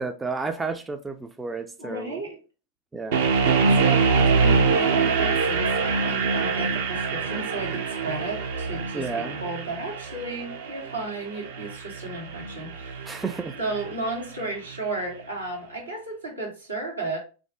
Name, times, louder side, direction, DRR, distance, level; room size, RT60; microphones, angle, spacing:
voice 1, 0.0-2.2 2.9-3.3 8.9-9.4 13.0-13.5, right 4 dB, 10° right, 0.3 m, -31 dB
voice 2, 1.8-2.4 3.6-13.2 13.6-17.2, right 2 dB, 85° right, 1.3 m, -33 dB
sound 1, 3.1-14.2, right 4 dB, 55° right, 0.6 m, -25 dB
3.4 x 2.5 x 3.3 m
figure-of-eight pair, 90°, 0 cm